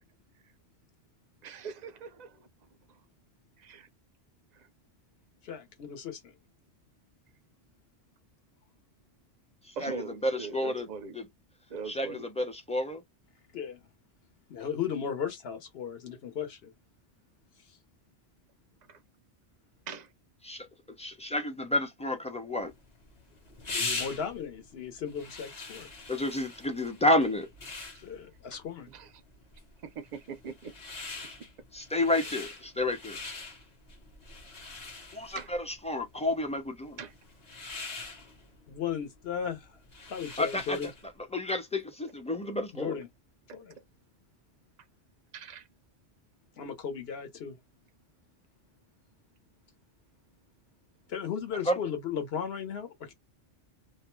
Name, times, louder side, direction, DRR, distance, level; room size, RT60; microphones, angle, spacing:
voice 1, 1.4-2.5 3.6-3.9 4.6-4.7 9.8-11.2 11.7-12.3 18.9-19.0 19.9-20.1 28.5-28.6 28.9-29.1 29.8-30.7 32.2-32.3 35.3-35.5 37.0-37.1 43.5-43.6 45.3-45.7, right 5 dB, 55° right, 0.5 m, -41 dB
voice 2, 5.4-6.3 13.5-13.8 14.5-16.7 23.7-25.9 28.0-28.9 38.7-39.8 40.1-40.9 42.7-43.1 43.5-43.8 46.6-47.6 51.1-53.1, left 7 dB, 65° left, 1.0 m, -36 dB
voice 3, 9.8-10.9 11.1-11.3 11.9-13.0 20.4-20.7 21.0-22.7 26.1-27.5 31.7-33.2 35.1-37.0 40.4-40.8 41.3-43.0 51.7-51.8, left 1 dB, 10° left, 0.4 m, -30 dB
sound 1, 22.6-41.1, left 3 dB, 40° left, 0.8 m, -43 dB
2.5 x 2.1 x 3.0 m
omnidirectional pair, 1.2 m